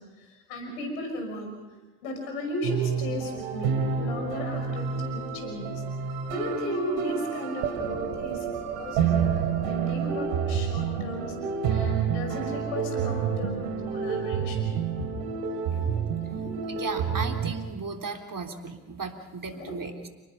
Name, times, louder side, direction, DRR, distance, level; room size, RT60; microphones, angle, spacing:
voice 1, 0.0-1.5 2.0-5.8 6.3-8.5 8.7-9.4 9.6-11.4 11.7-14.7 15.0-15.1 15.7-16.9 19.4-19.8, left 1 dB, 85° left, 4 dB, 5.9 m, -35 dB
sound 1, 2.6-17.5, right 7 dB, 80° right, 2.8 m, -29 dB
voice 2, 16.7-20.1, right 4 dB, 45° right, 4 dB, 3.5 m, -36 dB
30.0 x 19.5 x 5.5 m, 1.2 s
hypercardioid pair, 40°, 46 cm